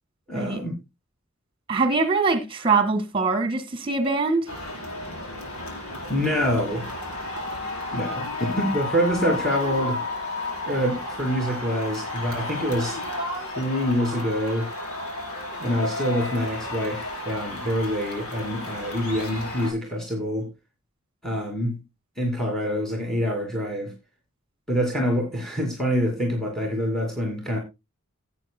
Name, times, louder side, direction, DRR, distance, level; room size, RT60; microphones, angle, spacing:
voice 1, 0.3-0.8 6.1-6.9 7.9-10.0 10.7-13.0 13.5-14.7 15.6-20.5 21.2-21.8 22.2-23.9 24.7-27.6, equal, ahead, 2.4 m, -26 dB
voice 2, 1.7-4.5, right 4 dB, 25° right, 1.8 m, -23 dB
sound 1, 4.5-19.7, left 2 dB, 85° left, 4.6 m, -32 dB
17.0 x 8.6 x 2.2 m
head